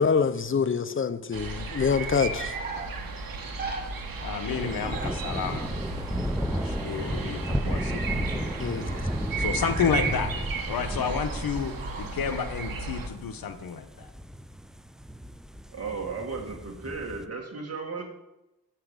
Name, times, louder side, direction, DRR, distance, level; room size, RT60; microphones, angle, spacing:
voice 1, 0.0-2.6 8.6-8.9, left 5 dB, 35° left, 0.7 m, -25 dB
sound 1, 1.3-13.1, right 4 dB, 70° right, 1.4 m, -35 dB
sound 2, 1.8-2.9 3.6-3.8 4.2-4.3 4.9-8.5 8.8-9.1 9.5-10.5 10.9-11.4 11.7-12.4, right 3 dB, 25° right, 1.9 m, -42 dB
voice 2, 4.2-5.7 6.5-9.0 9.4-10.3 10.7-11.7 12.0-14.1, left 6 dB, 80° left, 1.0 m, -31 dB
sound 3, 4.5-17.3, equal, ahead, 0.5 m, -34 dB
voice 3, 15.7-18.0, right 4 dB, 45° right, 1.8 m, -35 dB
7.1 x 5.8 x 6.6 m
cardioid pair, 65°, 35 cm